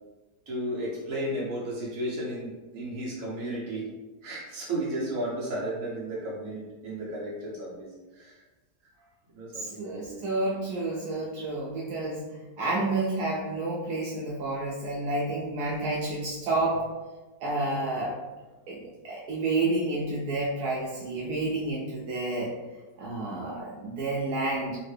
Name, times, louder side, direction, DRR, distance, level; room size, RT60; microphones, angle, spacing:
voice 1, 0.5-3.8 4.2-8.4 9.0-9.1 9.3-10.3, right 1 dB, 60° right, -5 dB, 1.4 m, -34 dB
voice 2, 9.5-12.2 12.6-16.8 17.4-18.2 18.7-22.5 23.0-24.8, right 2 dB, 80° right, -5 dB, 1.1 m, -30 dB
3.7 x 2.1 x 3.2 m, 1.2 s
omnidirectional pair, 1.6 m